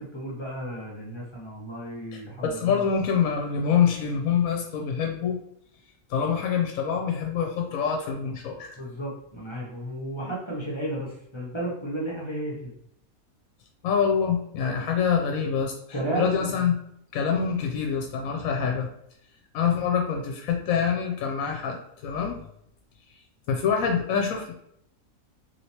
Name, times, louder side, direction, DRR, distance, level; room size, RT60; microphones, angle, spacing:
voice 1, 0.0-2.8 8.8-12.7 15.9-16.6, right 1 dB, 30° left, -4 dB, 0.5 m, -33 dB
voice 2, 2.1-5.4 6.1-8.8 13.8-15.7 16.1-16.8 17.1-18.9 19.5-22.4 23.5-24.5, left 7 dB, 75° left, 2 dB, 1.0 m, -25 dB
3.1 x 2.9 x 2.8 m, 0.72 s
omnidirectional pair, 1.5 m